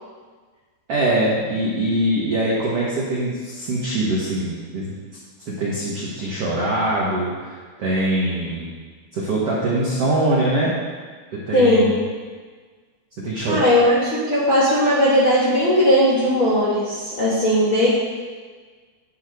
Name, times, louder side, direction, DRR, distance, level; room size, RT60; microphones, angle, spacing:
voice 1, 0.9-5.0 5.5-8.7 9.1-10.7 11.3-11.9 13.2-13.6, right 1 dB, 60° right, -6 dB, 1.6 m, -23 dB
voice 2, 11.5-11.9 13.4-17.9, equal, 50° left, -8 dB, 1.6 m, -18 dB
11.0 x 9.3 x 3.8 m, 1.5 s
omnidirectional pair, 5.1 m